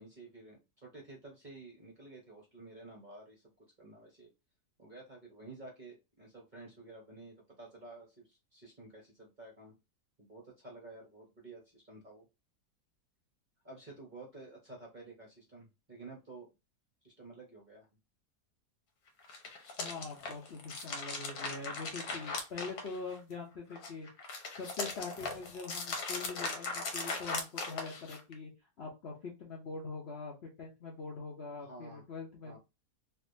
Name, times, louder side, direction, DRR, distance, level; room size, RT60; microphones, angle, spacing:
voice 1, 0.0-4.3 4.8-9.8 10.2-12.3 13.6-16.5 17.0-17.9 31.6-32.0 32.4-32.6, right 2 dB, 40° right, -2 dB, 0.8 m, -51 dB
sound 1, 19.2-23.3 23.7-28.3, left 3 dB, 75° left, 1.3 m, -39 dB
voice 2, 19.8-24.1 24.6-28.5 28.8-32.6, left 4 dB, 55° left, -2 dB, 0.7 m, -43 dB
3.3 x 2.6 x 2.6 m, 0.26 s
omnidirectional pair, 1.7 m